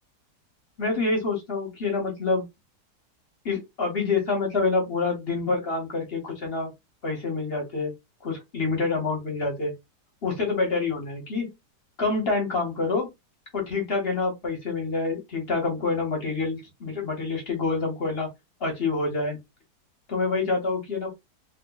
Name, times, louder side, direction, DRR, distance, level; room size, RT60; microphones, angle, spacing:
voice 1, 0.8-2.4 3.4-6.7 7.0-7.9 8.2-9.7 10.2-11.5 12.0-13.1 13.5-18.3 18.6-19.4 20.1-21.1, left 3 dB, 40° left, 1.0 m, -27 dB
2.7 x 2.2 x 3.8 m
omnidirectional pair, 1.8 m